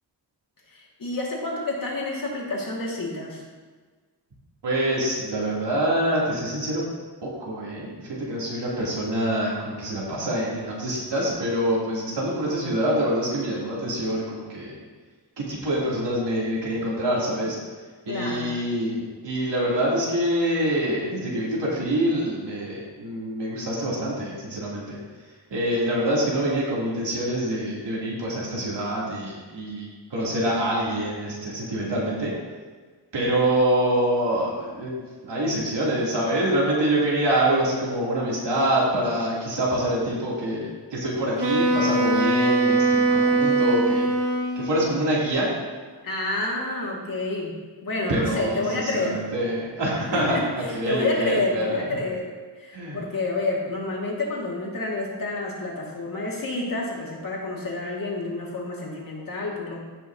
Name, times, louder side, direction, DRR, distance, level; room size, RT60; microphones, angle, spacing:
voice 1, 0.7-3.4 18.1-18.5 46.0-47.5 47.8-49.2 50.1-59.8, left 2 dB, 55° left, -3 dB, 1.9 m, -29 dB
voice 2, 4.6-6.9 7.2-14.8 15.4-17.6 18.1-25.0 25.5-32.3 33.1-44.1 44.5-45.5 48.1-51.8 52.7-53.0, right 1 dB, 85° right, -6 dB, 2.7 m, -25 dB
Wind instrument woodwind instrument, 41.4-45.0, right 2 dB, 65° right, 1.1 m, -21 dB
16.0 x 5.6 x 2.7 m, 1.4 s
wide cardioid pair, 170°, 41 cm